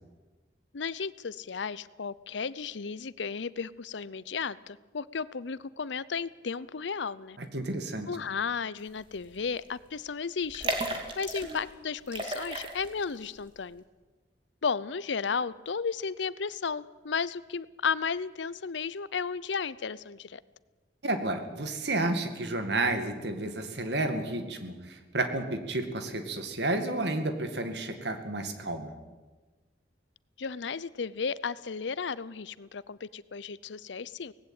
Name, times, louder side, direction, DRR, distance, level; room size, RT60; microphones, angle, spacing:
voice 1, 0.7-7.4 8.1-10.7 11.2-13.8 14.6-20.4 30.4-34.3, left 5 dB, 80° left, 19 dB, 0.6 m, -34 dB
voice 2, 7.4-8.1 21.0-28.9, right 2 dB, 65° right, 8 dB, 2.2 m, -31 dB
sound 1, 9.1-9.4 9.6-9.7 10.4-11.7 12.1-13.1 13.5-13.6, right 1 dB, 25° right, 2.4 m, -34 dB
18.5 x 16.5 x 8.9 m, 1.3 s
head